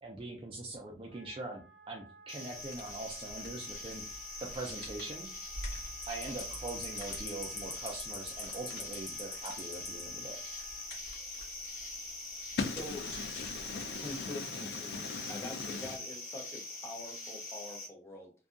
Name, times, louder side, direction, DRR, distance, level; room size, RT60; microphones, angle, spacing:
voice 1, 0.0-1.6 1.9-4.0 4.4-5.3 6.1-10.4, right 2 dB, 30° right, 0.3 m, -42 dB
Wind instrument woodwind instrument, 1.0-10.9, right 6 dB, 90° right, 0.6 m, -58 dB
sound 1, 2.3-17.9, left 2 dB, 45° left, 0.9 m, -43 dB
sound 2, 2.5-14.3, left 1 dB, 90° left, 1.2 m, -50 dB
voice 2, 12.6-16.0, left 4 dB, 65° left, 0.4 m, -39 dB
voice 3, 14.0-15.0 15.3-18.3, left 1 dB, 15° left, 0.6 m, -44 dB
2.6 x 2.3 x 2.4 m
head